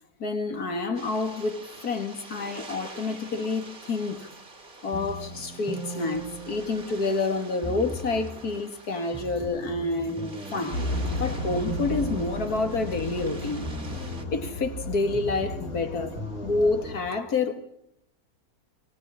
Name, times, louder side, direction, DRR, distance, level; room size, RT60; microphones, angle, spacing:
voice 1, 0.2-4.3 4.8-10.8 11.2-13.6 14.3-17.6, left 3 dB, 85° left, 2.5 m, -28 dB
sound 1, 0.9-14.2, right 2 dB, 35° right, 2.4 m, -46 dB
sound 2, 4.9-7.2 7.6-8.5 9.1-13.3 13.6-14.5 15.1-16.9, right 1 dB, 5° right, 1.4 m, -39 dB
sound 3, 10.7-17.0, left 1 dB, 70° left, 2.6 m, -34 dB
24.0 x 17.0 x 10.0 m
omnidirectional pair, 1.6 m